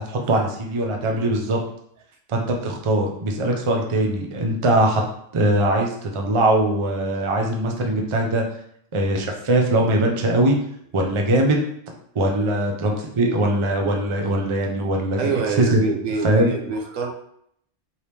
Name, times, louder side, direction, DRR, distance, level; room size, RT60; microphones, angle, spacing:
voice 1, 0.0-1.6 2.3-5.0 5.3-8.4 8.9-10.6 10.9-11.6 12.1-15.3 15.6-15.8 16.2-16.5, right 1 dB, 35° right, 1 dB, 0.5 m, -21 dB
voice 2, 15.2-17.1, right 4 dB, 80° right, 2 dB, 1.1 m, -26 dB
4.6 x 2.9 x 3.4 m, 0.69 s
omnidirectional pair, 1.3 m